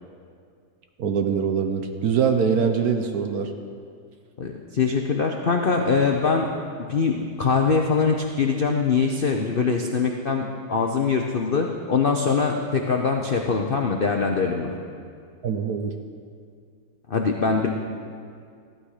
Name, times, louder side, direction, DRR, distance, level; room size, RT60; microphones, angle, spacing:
voice 1, 1.0-3.5 15.4-15.9, right 6 dB, 60° right, 6 dB, 1.1 m, -23 dB
voice 2, 4.4-6.5 6.9-14.7 17.1-17.7, left 5 dB, 75° left, 2 dB, 0.5 m, -23 dB
15.0 x 11.5 x 4.9 m, 2.3 s
omnidirectional pair, 2.1 m